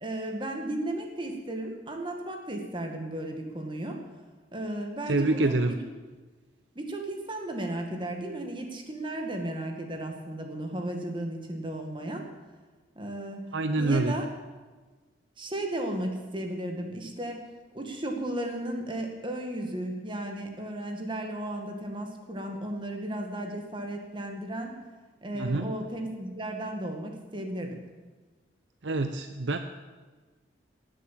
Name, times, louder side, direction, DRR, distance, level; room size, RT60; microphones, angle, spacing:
voice 1, 0.0-4.0 4.5-5.8 6.8-12.3 13.0-13.4 13.8-14.3 15.4-17.5 17.7-24.8 25.2-27.8, right 1 dB, 25° right, 3 dB, 1.9 m, -34 dB
voice 2, 5.1-5.8 13.5-14.2 25.3-25.7 28.8-29.6, right 2 dB, 85° right, 7 dB, 0.7 m, -26 dB
18.0 x 7.8 x 7.5 m, 1.3 s
head